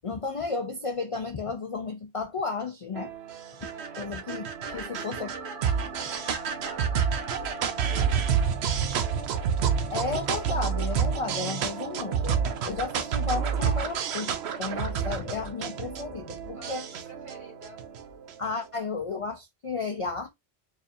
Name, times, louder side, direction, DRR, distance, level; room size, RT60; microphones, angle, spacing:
voice 1, 0.0-3.1 4.0-5.3 9.9-16.8 18.4-20.3, left 4 dB, 50° left, 0.4 m, -33 dB
sound 1, 2.9-18.5, right 7 dB, 75° right, 0.9 m, -29 dB
voice 2, 3.7-4.0 4.6-9.4 16.5-17.8, equal, 45° right, 2.0 m, -48 dB
4.8 x 2.5 x 2.6 m
omnidirectional pair, 1.1 m